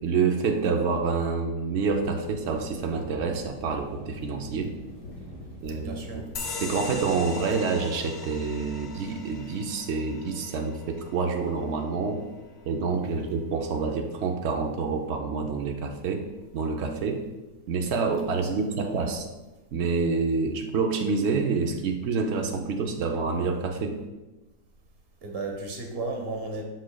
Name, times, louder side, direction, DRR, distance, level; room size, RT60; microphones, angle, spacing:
voice 1, 0.0-4.7 5.6-6.2 6.6-12.2 12.6-16.3 16.5-17.2 17.7-19.3 19.7-24.0, right 4 dB, 80° right, 3 dB, 0.6 m, -27 dB
sound 1, 1.9-9.2, left 1 dB, 80° left, 2.3 m, -45 dB
voice 2, 5.7-6.3 13.2-13.3 18.9-19.0 25.2-26.6, right 3 dB, 45° right, 2 dB, 1.0 m, -34 dB
sound 2, 6.3-13.4, left 3 dB, 55° left, 0.8 m, -40 dB
7.8 x 6.2 x 2.2 m, 1.1 s
omnidirectional pair, 1.8 m